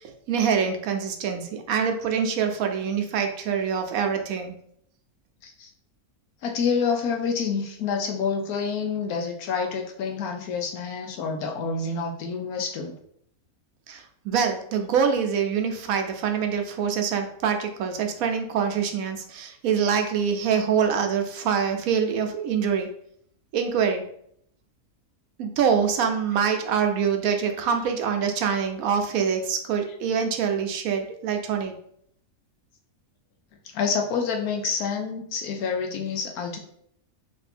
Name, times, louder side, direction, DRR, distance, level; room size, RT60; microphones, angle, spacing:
voice 1, 0.3-4.5 13.9-22.9 23.5-24.0 25.4-31.7, right 7 dB, 75° right, 5 dB, 1.0 m, -25 dB
voice 2, 6.4-12.9 33.7-36.6, left 5 dB, 85° left, 3 dB, 1.2 m, -28 dB
3.4 x 2.6 x 4.2 m, 0.66 s
omnidirectional pair, 1.5 m